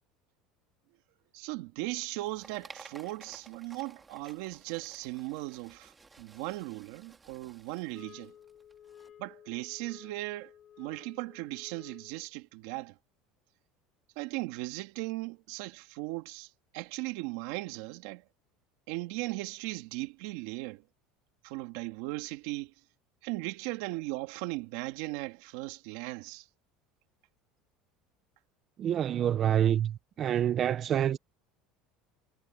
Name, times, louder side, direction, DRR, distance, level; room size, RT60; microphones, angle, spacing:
voice 1, 1.3-8.3 9.2-10.5 10.8-13.0 14.2-18.2 18.9-20.8 21.4-22.7 23.2-26.5, right 21 dB, 70° right, 2.1 m, -38 dB
sound 1, 1.9-9.1, right 4 dB, 10° right, 2.6 m, -55 dB
sound 2, 7.9-12.3, left 9 dB, 30° left, 2.1 m, -54 dB
voice 2, 28.8-31.2, right 10 dB, 30° right, 0.4 m, -27 dB
cardioid pair, 170°, 0 cm